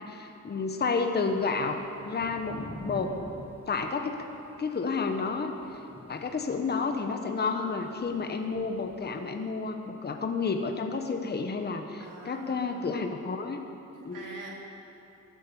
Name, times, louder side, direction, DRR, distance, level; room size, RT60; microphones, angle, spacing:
voice 1, 0.0-1.8 2.0-3.2 3.7-4.3 4.6-5.5 6.1-13.6 14.0-14.2, left 4 dB, 30° left, 5 dB, 1.2 m, -30 dB
Thunder / Rain, 1.2-9.6, equal, 5° right, 1.6 m, -48 dB
voice 2, 12.0-13.0 13.9-14.5, right 3 dB, 75° right, -2 dB, 3.6 m, -45 dB
15.0 x 12.0 x 7.1 m, 2.9 s
cardioid pair, 105°, 33 cm